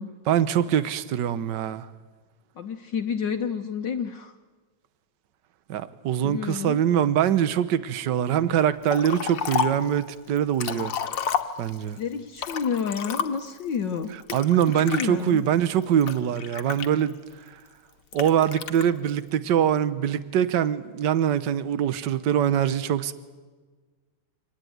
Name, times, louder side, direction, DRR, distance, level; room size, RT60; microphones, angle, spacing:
voice 1, 0.3-1.9 5.7-10.9 11.6-12.0 14.3-17.2 18.1-23.1, right 9 dB, 60° right, 1.6 m, -23 dB
voice 2, 2.6-4.3 6.2-6.8 12.0-14.1 14.7-15.5, left 6 dB, 60° left, 1.6 m, -29 dB
Liquid, 8.9-9.9 10.4-11.9 12.4-13.6 14.3-15.1 15.7-17.3 18.1-18.8, left 8 dB, 85° left, 2.2 m, -30 dB
26.0 x 19.5 x 9.5 m
omnidirectional pair, 2.4 m